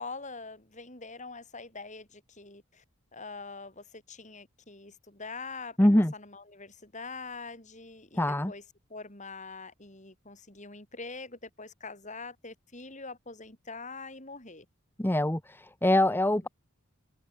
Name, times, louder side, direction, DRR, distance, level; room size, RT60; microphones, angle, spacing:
voice 1, 0.0-2.8 3.1-8.6 8.9-14.7 15.8-16.5, left 4 dB, 35° left, 5.4 m, -44 dB
voice 2, 5.8-6.1 8.2-8.5 15.0-16.5, left 1 dB, 10° left, 0.9 m, -24 dB
head